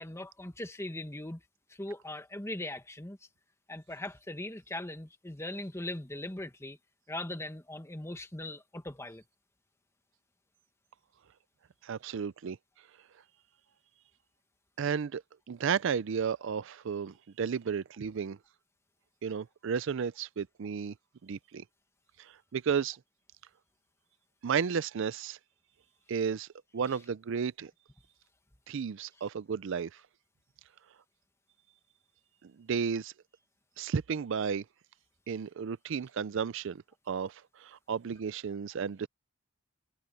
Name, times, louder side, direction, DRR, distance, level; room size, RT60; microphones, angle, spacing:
voice 1, 0.0-1.4 1.7-3.2 3.7-6.8 7.1-9.2, left 1 dB, 15° left, 1.5 m, -40 dB
voice 2, 11.8-12.6 14.8-15.2 15.5-18.4 19.2-20.9 21.2-21.6 22.2-23.0 24.4-25.4 26.1-26.5 26.7-27.7 28.7-30.0 32.4-33.1 33.8-34.6 35.3-39.1, right 6 dB, 65° right, 0.4 m, -33 dB
head